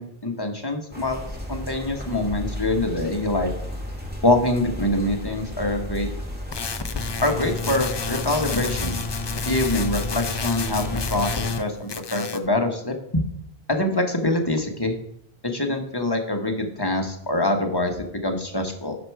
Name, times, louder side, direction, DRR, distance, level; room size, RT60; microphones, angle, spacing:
voice 1, 0.0-3.5 4.2-6.1 7.2-9.0 9.4-13.3 13.7-14.9 15.4-17.9 18.2-19.0, left 1 dB, 25° left, 3 dB, 1.1 m, -24 dB
sound 1, 0.9-11.4, equal, 10° right, 1.8 m, -33 dB
sound 2, 6.5-11.6 11.9-12.5, left 4 dB, 45° left, 0.3 m, -30 dB
9.6 x 6.3 x 4.7 m, 0.75 s
omnidirectional pair, 1.1 m